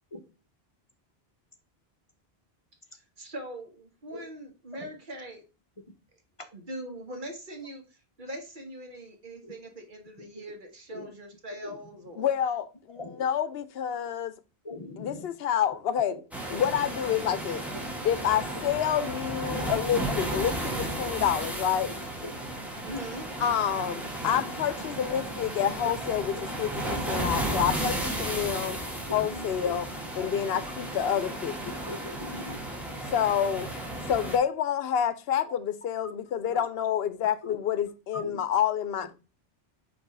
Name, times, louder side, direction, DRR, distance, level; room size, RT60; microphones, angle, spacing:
voice 1, 3.2-5.4 6.5-12.4 22.8-23.3 33.1-33.5, right 1 dB, 55° right, 1.4 m, -42 dB
voice 2, 12.2-14.3 15.0-16.2 16.5-17.6 18.0-21.9 23.4-28.8 29.1-29.9 30.2-31.6 33.1-33.7 34.1-39.1, left 9 dB, 75° left, 0.8 m, -28 dB
voice 3, 14.6-15.3 16.1-16.2 16.5-16.6 18.0-18.1 19.6-19.7 20.1-20.5 20.9-21.0 22.2-22.4 24.3-24.4 25.6-25.7 26.3-26.4 29.1-29.8 30.2-30.4 31.7-32.6 36.0-36.1 36.4-36.6 37.4-37.6 38.1-38.4, left 2 dB, 35° left, 0.7 m, -40 dB
sound 1, 16.3-34.4, right 1 dB, ahead, 1.3 m, -34 dB
6.0 x 3.1 x 5.3 m
omnidirectional pair, 1.0 m